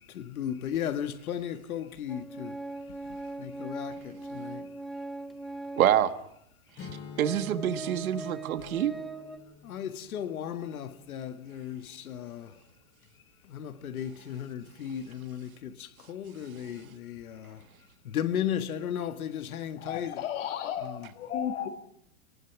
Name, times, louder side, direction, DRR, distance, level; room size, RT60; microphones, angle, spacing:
voice 1, 0.1-2.6 3.4-4.7 9.6-12.6 13.4-17.6 18.0-20.2 20.8-21.1, left 9 dB, 85° left, 1.8 m, -35 dB
Organ, 2.1-6.0 6.7-6.8 7.2-9.4, right 2 dB, ahead, 1.3 m, -40 dB
voice 2, 5.8-6.1 6.8-6.9 7.2-8.9, right 11 dB, 80° right, 1.8 m, -26 dB
Strum, 6.8-12.1, left 6 dB, 25° left, 3.0 m, -48 dB
voice 3, 19.8-21.7, left 9 dB, 60° left, 2.0 m, -34 dB
24.5 x 20.0 x 6.1 m
supercardioid pair, 150°, 42 cm